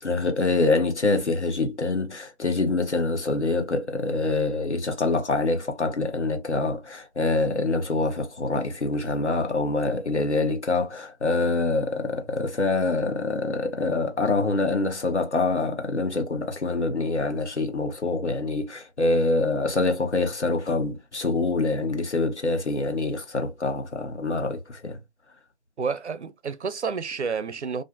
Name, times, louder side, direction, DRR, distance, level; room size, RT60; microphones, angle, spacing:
voice 1, 0.0-25.0, left 3 dB, 80° left, 1.0 m, -25 dB
voice 2, 25.8-27.8, right 5 dB, 75° right, 0.5 m, -30 dB
2.5 x 2.4 x 2.4 m
figure-of-eight pair, 175°, 34 cm